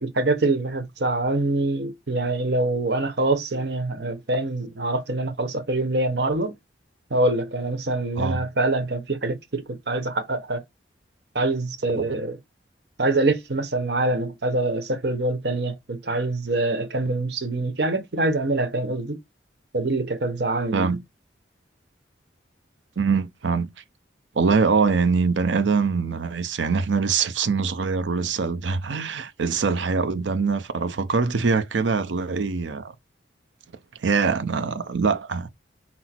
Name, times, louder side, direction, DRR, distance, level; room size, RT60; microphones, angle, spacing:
voice 1, 0.0-6.5 7.1-10.6 11.3-12.4 13.0-19.2 19.7-21.0, right 2 dB, 65° right, 0.9 m, -25 dB
voice 2, 20.7-21.0 23.0-23.7 24.4-32.9 34.0-35.5, right 5 dB, 90° right, 0.6 m, -23 dB
5.9 x 2.0 x 4.3 m
head